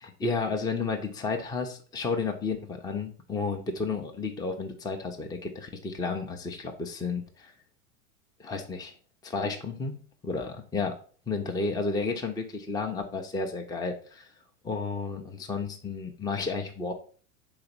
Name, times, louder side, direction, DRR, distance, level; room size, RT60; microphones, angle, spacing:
voice 1, 0.0-7.5 8.4-8.9 9.2-9.9 10.2-10.9 11.3-14.3 14.6-16.9, left 4 dB, 10° left, 4 dB, 0.6 m, -32 dB
4.8 x 4.0 x 5.2 m, 0.42 s
hypercardioid pair, 95°, 44 cm